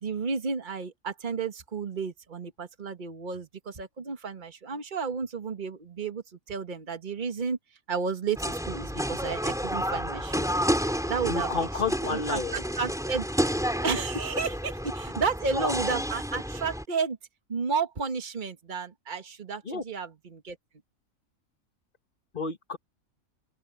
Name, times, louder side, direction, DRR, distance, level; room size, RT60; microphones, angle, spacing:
voice 1, 0.0-7.6 7.9-10.5 11.1-17.2 17.5-20.6, right 5 dB, 35° right, 1.6 m, -32 dB
sound 1, 8.3-16.8, equal, ahead, 4.0 m, -30 dB
voice 2, 11.2-12.6 19.7-19.8 22.3-22.8, left 4 dB, 40° left, 1.6 m, -30 dB
open air
omnidirectional pair, 1.5 m